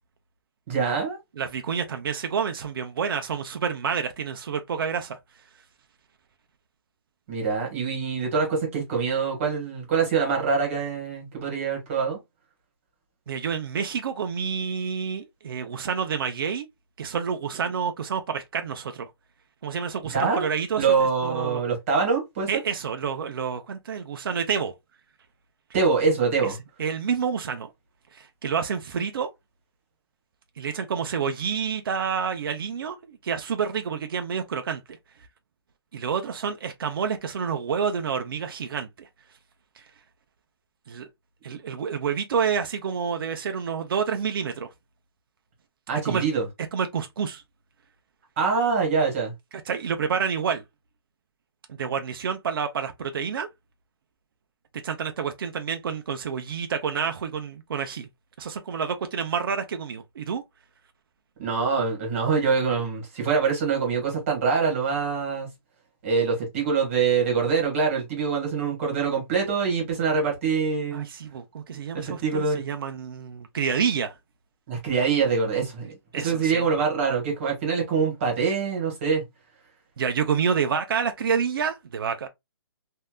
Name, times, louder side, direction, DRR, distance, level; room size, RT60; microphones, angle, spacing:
voice 1, 0.7-1.2 7.3-12.2 20.1-20.5 20.7-22.5 25.7-26.6 45.9-46.4 48.4-49.3 61.4-65.5 66.0-71.1 71.9-72.6 74.7-79.2, right 5 dB, 30° right, 1.6 m, -24 dB
voice 2, 1.4-5.2 13.3-16.7 17.0-19.1 19.6-20.9 21.2-21.6 22.5-24.7 26.8-27.7 28.1-29.3 30.6-34.8 35.9-38.9 40.9-41.1 41.4-44.7 46.0-46.2 46.7-47.4 49.7-50.6 51.7-53.5 54.8-58.1 58.4-60.4 70.9-74.1 76.1-76.6 80.0-82.3, right 6 dB, 55° right, 0.6 m, -28 dB
3.3 x 2.7 x 2.3 m
hypercardioid pair, 165°, 14 cm